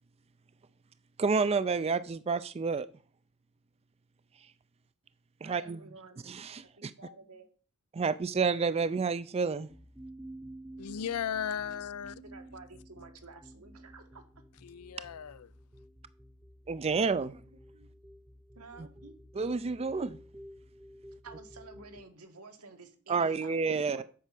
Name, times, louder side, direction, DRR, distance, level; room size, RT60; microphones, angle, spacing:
voice 1, 1.2-2.9 5.4-5.8 6.3-6.9 7.9-9.7 16.7-17.3 19.4-20.2 23.1-24.0, right 4 dB, 30° right, 0.4 m, -29 dB
voice 2, 5.4-6.2 6.8-7.5 10.7-11.8 12.2-14.4 17.0-17.9 18.5-19.1 21.0-24.0, right 3 dB, 80° right, 1.9 m, -52 dB
sound 1, 9.7-22.0, right 1 dB, 10° right, 0.7 m, -51 dB
voice 3, 10.8-12.2 14.6-15.5, left 8 dB, 80° left, 0.5 m, -36 dB
8.4 x 5.5 x 7.6 m
head